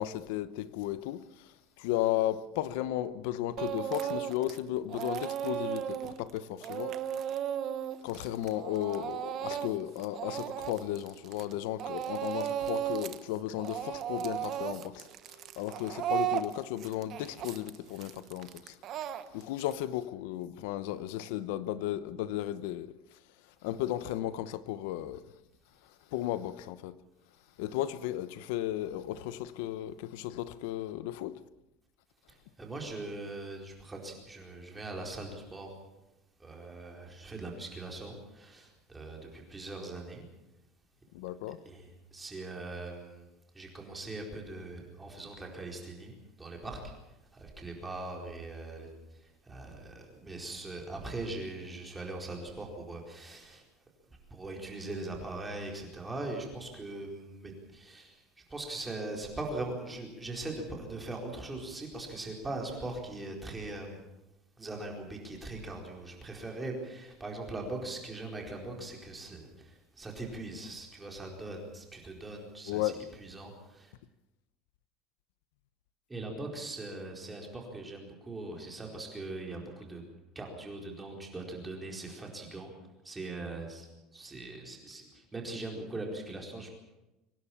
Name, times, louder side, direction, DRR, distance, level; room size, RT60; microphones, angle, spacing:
voice 1, 0.0-6.9 8.0-18.8 19.1-22.9 23.6-25.2 26.1-27.0 27.6-31.4 41.1-41.6 72.7-72.9, left 13 dB, 75° left, 1.0 m, -35 dB
Speech / Crying sobbing, 3.6-4.6 4.9-11.5 11.8-13.2 13.5-19.7, right 10 dB, 35° right, 1.2 m, -35 dB
voice 2, 32.3-35.8 36.4-40.3 41.6-43.3 43.5-46.9 47.3-53.6 54.1-64.0 64.6-73.9 76.1-80.0 80.3-82.7 83.0-83.9 84.1-86.7, right 2 dB, 10° right, 4.4 m, -41 dB
24.5 x 18.0 x 7.3 m
cardioid pair, 180°, 0 cm